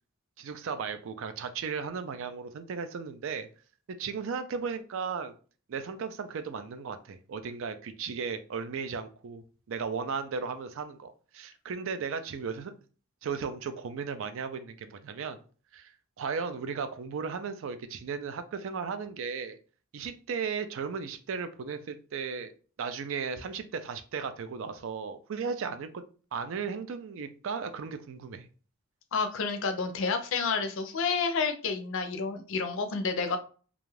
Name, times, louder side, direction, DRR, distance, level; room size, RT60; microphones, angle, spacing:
voice 1, 0.4-3.5 4.0-5.3 5.7-12.7 13.2-15.4 15.7-19.6 19.9-22.5 22.8-26.0 26.3-28.5, right 5 dB, 65° right, 10 dB, 0.4 m, -35 dB
voice 2, 29.1-33.4, left 4 dB, 65° left, 7 dB, 0.5 m, -30 dB
2.5 x 2.3 x 3.1 m, 0.39 s
head